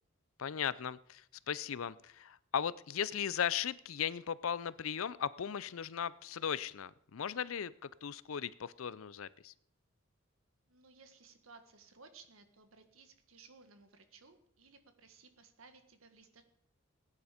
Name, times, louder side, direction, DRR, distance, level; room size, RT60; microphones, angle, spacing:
voice 1, 0.4-9.5, left 8 dB, 75° left, 19 dB, 0.5 m, -37 dB
voice 2, 10.7-16.4, right 4 dB, 85° right, 8 dB, 1.8 m, -59 dB
18.5 x 9.8 x 5.1 m, 0.68 s
head